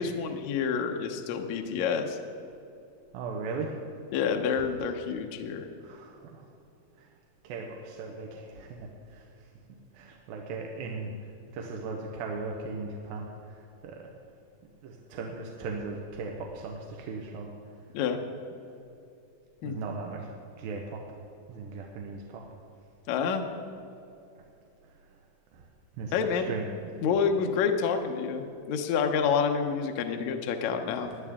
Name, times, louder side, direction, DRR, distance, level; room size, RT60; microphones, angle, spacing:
voice 1, 0.0-2.2 4.1-5.7 17.9-18.2 19.6-19.7 23.1-23.4 26.1-26.5 27.0-31.1, left 6 dB, 70° left, 5 dB, 1.8 m, -28 dB
voice 2, 3.1-4.0 5.8-6.5 7.0-7.1 7.4-9.5 9.9-14.1 14.8-17.5 18.7-18.8 19.6-20.3 20.6-21.2 21.5-22.5 24.8-25.2 25.5-25.7 25.9-26.7 30.9-31.2, right 4 dB, 85° right, 0 dB, 2.7 m, -38 dB
19.5 x 11.0 x 3.6 m, 2.7 s
omnidirectional pair, 4.2 m